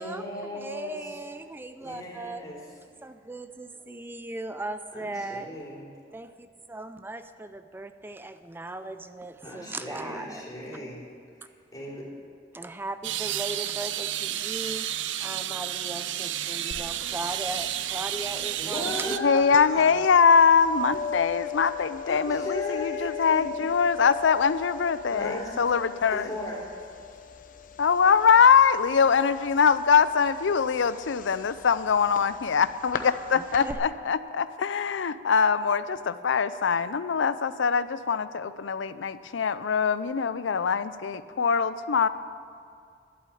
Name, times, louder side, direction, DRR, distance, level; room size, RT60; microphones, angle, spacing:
voice 1, 0.0-1.2 1.8-2.6 4.9-5.9 9.4-11.0 11.3-12.0 18.6-19.5 22.1-23.5 25.1-25.5 26.1-26.6, left 1 dB, 20° left, -5 dB, 3.3 m, -37 dB
voice 2, 0.5-2.4 3.0-5.5 6.1-10.4 12.5-14.9 15.2-19.4 19.8-20.1 33.6-33.8, right 2 dB, 10° right, 10 dB, 0.4 m, -38 dB
sound 1, 13.0-19.2, right 12 dB, 75° right, 0.5 m, -31 dB
sound 2, 16.7-33.7, left 8 dB, 45° left, 0.7 m, -39 dB
voice 3, 19.1-26.3 27.8-42.1, left 6 dB, 80° left, 14 dB, 0.5 m, -23 dB
11.5 x 8.3 x 8.5 m, 2.3 s
head